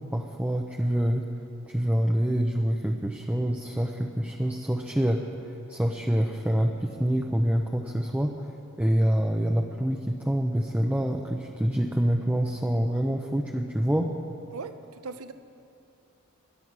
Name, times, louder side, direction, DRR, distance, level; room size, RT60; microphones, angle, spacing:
voice 1, 0.1-1.3 1.7-8.5 8.8-14.1, equal, 5° right, 1 dB, 0.6 m, -26 dB
voice 2, 14.5-15.3, right 4 dB, 70° right, 10 dB, 0.7 m, -39 dB
21.0 x 9.8 x 6.1 m, 2.8 s
head